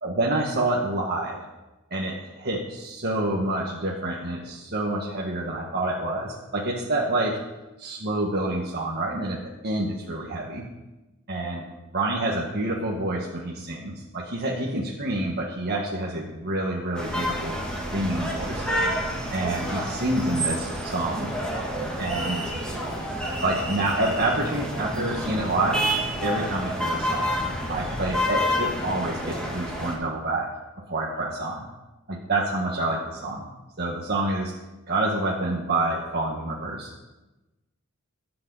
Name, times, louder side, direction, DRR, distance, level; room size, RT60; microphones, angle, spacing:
voice 1, 0.0-1.4 1.9-7.4 7.8-10.6 11.3-11.7 11.9-18.6 19.3-21.3 22.0-22.4 23.4-25.8 26.2-27.3 27.7-30.5 30.9-31.6 32.1-33.4 33.8-34.5 34.9-36.9, right 2 dB, 50° right, -2 dB, 1.6 m, -27 dB
sound 1, 16.9-29.9, equal, 5° left, 2.8 m, -29 dB
22.0 x 8.7 x 4.1 m, 1.1 s
head